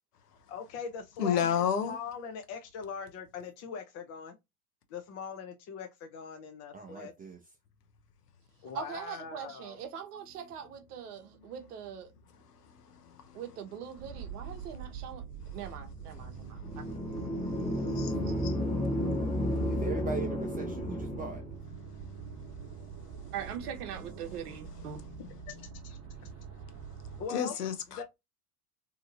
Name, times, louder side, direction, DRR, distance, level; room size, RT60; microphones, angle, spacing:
voice 1, 0.5-4.4 4.9-7.1 8.6-9.8 25.5-25.6 25.8-26.0 26.7-26.8 27.2-27.6 27.9-28.0, left 6 dB, 35° left, 0.5 m, -41 dB
voice 2, 1.2-1.9 16.2-19.7 27.3-28.0, left 8 dB, 85° left, 0.8 m, -34 dB
voice 3, 6.7-7.5 19.6-21.5, right 5 dB, 20° right, 0.5 m, -40 dB
voice 4, 8.7-12.1 13.3-15.2 15.5-17.3 18.2-18.3 23.3-25.0, right 8 dB, 75° right, 0.8 m, -42 dB
sound 1, 14.0-27.3, right 5 dB, 40° right, 1.0 m, -45 dB
sound 2, 16.6-21.6, equal, 15° left, 1.2 m, -32 dB
2.8 x 2.6 x 2.5 m
hypercardioid pair, 85°, 46 cm